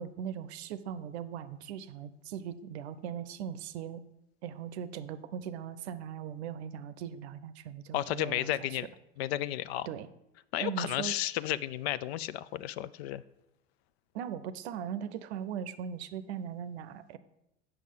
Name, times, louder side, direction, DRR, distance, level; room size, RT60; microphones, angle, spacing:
voice 1, 0.0-4.0 4.4-8.8 9.9-10.1 10.6-11.2 14.1-17.2, right 8 dB, 75° right, 13 dB, 0.6 m, -39 dB
voice 2, 7.9-8.9 9.2-9.9 10.5-13.2, left 13 dB, 70° left, 17 dB, 0.5 m, -33 dB
7.9 x 6.0 x 5.0 m, 0.87 s
hypercardioid pair, 70°, 33 cm